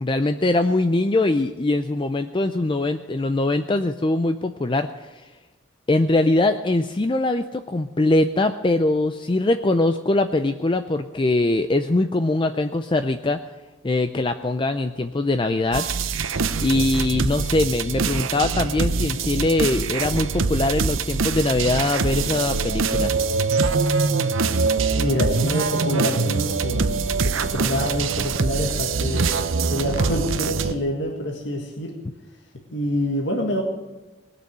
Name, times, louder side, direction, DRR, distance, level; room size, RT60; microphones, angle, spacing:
voice 1, 0.0-5.3 5.9-13.4 13.8-15.8 16.6-23.1, left 2 dB, 25° left, 9 dB, 0.4 m, -22 dB
sound 1, 15.7-30.7, right 4 dB, 85° right, 0.8 m, -23 dB
voice 2, 24.9-27.0 27.2-29.3 29.7-31.9 32.7-33.6, left 1 dB, 60° left, 1 dB, 1.8 m, -26 dB
19.5 x 6.9 x 9.3 m, 1.1 s
head